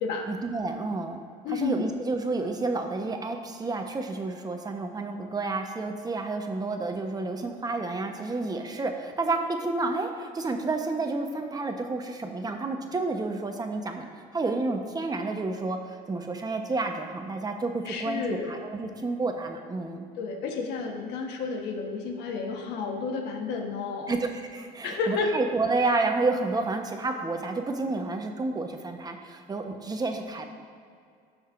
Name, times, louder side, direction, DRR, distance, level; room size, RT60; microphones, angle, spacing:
voice 1, 0.3-1.2 1.5-20.1 24.1-30.5, right 3 dB, 25° right, 4 dB, 0.9 m, -30 dB
voice 2, 1.4-1.8 17.8-18.6 20.2-24.1 24.8-25.3, left 4 dB, 85° left, 2 dB, 1.2 m, -31 dB
16.0 x 6.4 x 2.5 m, 2.3 s
cardioid pair, 110°, 17 cm